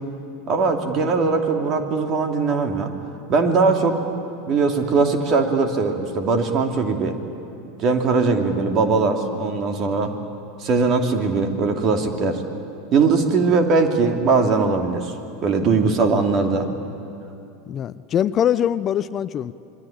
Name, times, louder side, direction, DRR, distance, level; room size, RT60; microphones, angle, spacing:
voice 1, 0.5-2.9 3.3-4.0 4.5-7.2 7.8-10.1 10.6-12.4 12.9-15.1 15.4-16.7, right 4 dB, 40° right, 4 dB, 2.9 m, -20 dB
voice 2, 17.7-19.5, left 10 dB, 35° left, 16 dB, 0.6 m, -22 dB
26.0 x 22.5 x 8.8 m, 2.6 s
figure-of-eight pair, 85°, 0 cm